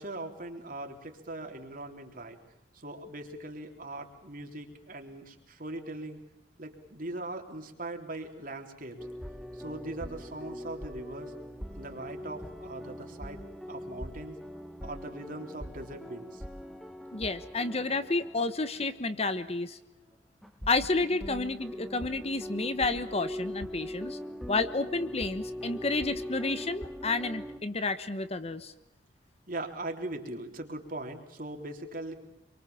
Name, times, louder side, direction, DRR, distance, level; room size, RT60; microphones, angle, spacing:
voice 1, 0.0-2.4 2.7-6.2 6.6-9.0 9.5-11.3 11.7-13.4 13.7-14.4 14.8-16.4 29.5-32.1, right 2 dB, 50° right, 4 dB, 3.6 m, -40 dB
sound 1, 9.0-19.2 19.4-19.6 20.4-27.6, equal, ahead, 1.7 m, -41 dB
voice 2, 17.1-19.8 20.7-24.2 24.5-28.7, left 3 dB, 35° left, 12 dB, 1.1 m, -30 dB
27.0 x 24.0 x 7.2 m, 0.86 s
head